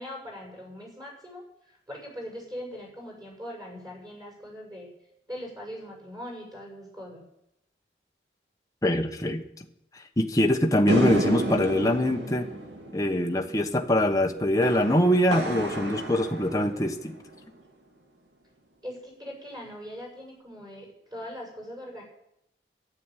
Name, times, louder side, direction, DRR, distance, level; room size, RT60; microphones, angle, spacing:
voice 1, 0.0-4.9 5.3-7.2 18.8-22.0, equal, 20° right, -2 dB, 6.7 m, -41 dB
voice 2, 8.8-9.4 10.2-12.5 12.9-17.2, left 1 dB, 20° left, 3 dB, 1.1 m, -23 dB
sound 1, 10.9-17.4, right 1 dB, 85° right, 2.6 m, -31 dB
12.0 x 11.0 x 9.2 m, 0.81 s
head